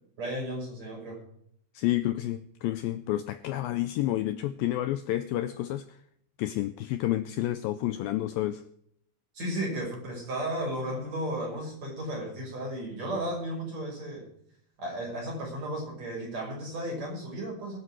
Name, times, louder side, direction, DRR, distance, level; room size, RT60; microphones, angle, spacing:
voice 1, 0.2-1.2 9.3-14.3 14.8-17.8, right 1 dB, 40° right, 6.6 m, -34 dB
voice 2, 1.7-6.0 6.4-8.6, left 14 dB, 85° left, 2.0 m, -30 dB
21.5 x 7.7 x 4.7 m
omnidirectional pair, 4.8 m